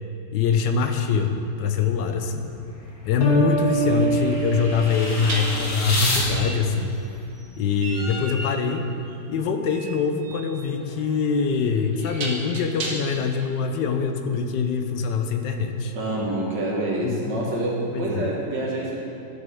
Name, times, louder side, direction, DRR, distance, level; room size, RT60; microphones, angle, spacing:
voice 1, 0.3-2.5 3.0-7.0 7.6-8.9 9.3-15.9 17.0-17.7 17.9-18.3, left 5 dB, 75° left, 5 dB, 1.2 m, -24 dB
sound 1, 2.6-6.2, equal, 90° left, 2.4 m, -29 dB
sound 2, 2.8-3.0 5.2-13.3, right 2 dB, 50° right, 1.4 m, -36 dB
sound 3, 3.2-5.8, right 4 dB, 55° left, 1.6 m, -26 dB
voice 2, 16.0-19.0, right 1 dB, 70° right, -5 dB, 2.3 m, -27 dB
13.0 x 6.7 x 3.5 m, 2.9 s
omnidirectional pair, 2.0 m